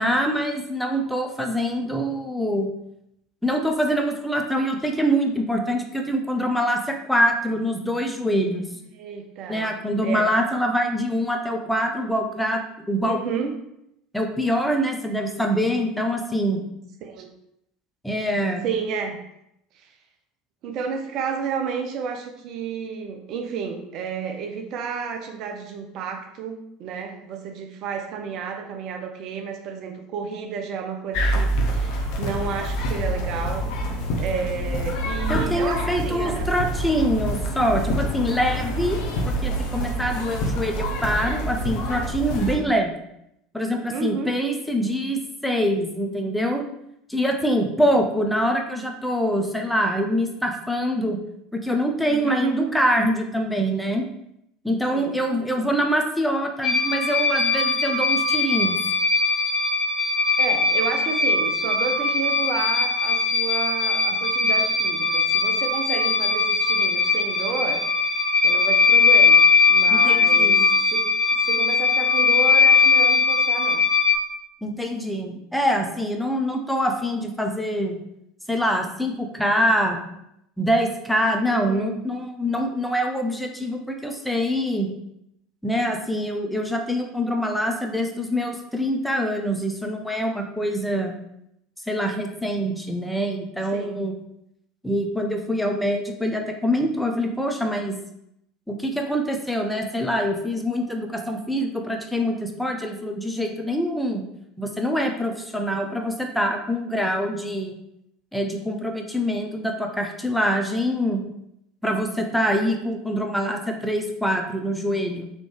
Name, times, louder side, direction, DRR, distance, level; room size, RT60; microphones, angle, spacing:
voice 1, 0.0-2.7 3.4-8.6 9.5-13.2 14.1-16.7 18.0-18.7 35.3-39.0 39.3-43.0 43.5-46.7 47.1-51.2 51.5-54.1 54.6-58.8 69.9-70.6 74.6-78.0 78.5-80.0 80.6-84.9 85.6-91.2 91.9-94.1 94.8-98.0 98.7-104.2 104.6-107.8 108.3-111.2 111.8-115.3, equal, ahead, 2 dB, 0.6 m, -24 dB
voice 2, 8.9-10.3 13.0-13.6 17.0-17.3 18.6-19.2 19.7-20.0 20.6-33.7 34.2-36.5 42.6-42.7 43.9-44.3 52.1-52.8 54.9-55.2 55.6-55.7 60.4-67.8 68.4-73.8 81.5-82.0 93.7-94.0, right 6 dB, 50° right, 4 dB, 0.6 m, -31 dB
sound 1, 31.1-42.6, equal, 60° left, 0.8 m, -26 dB
sound 2, 56.6-74.2, left 4 dB, 25° left, 0.8 m, -20 dB
4.1 x 3.1 x 3.2 m, 0.79 s
figure-of-eight pair, 70°, 0 cm